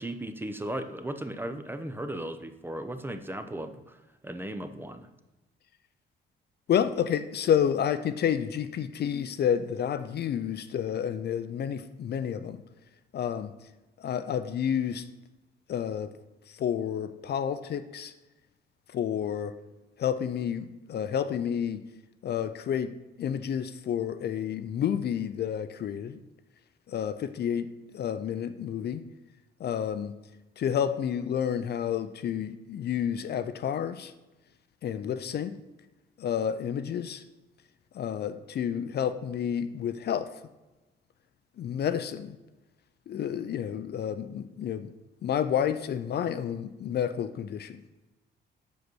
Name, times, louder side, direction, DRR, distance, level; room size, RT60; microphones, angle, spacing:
voice 1, 0.0-5.1, right 1 dB, 10° right, 9 dB, 0.7 m, -36 dB
voice 2, 6.7-12.6 13.1-13.5 14.0-15.1 15.7-16.1 16.6-18.1 18.9-19.5 20.0-21.8 22.2-26.2 26.9-29.0 29.6-30.1 30.6-34.1 34.8-35.6 36.2-37.2 37.9-40.4 41.6-42.4 43.1-44.9 45.2-47.8, left 9 dB, 55° left, 12 dB, 0.5 m, -30 dB
6.8 x 5.1 x 6.1 m, 1.1 s
cardioid pair, 90°, 20 cm